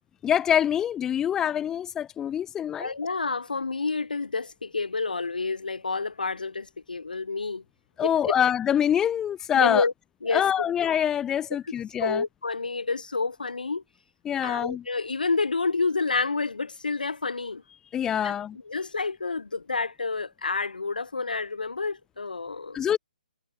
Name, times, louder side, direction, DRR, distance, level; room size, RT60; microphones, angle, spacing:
voice 1, 0.2-2.9 8.0-9.8 10.3-12.2 14.2-14.8 17.9-18.6 22.7-23.0, left 9 dB, 10° left, 0.4 m, -25 dB
voice 2, 2.8-7.6 8.0-8.3 9.5-9.9 10.2-10.7 12.0-13.8 14.4-17.6 18.2-18.3 18.7-22.9, left 4 dB, 70° left, 0.7 m, -29 dB
figure-of-eight pair, 135°, 5 cm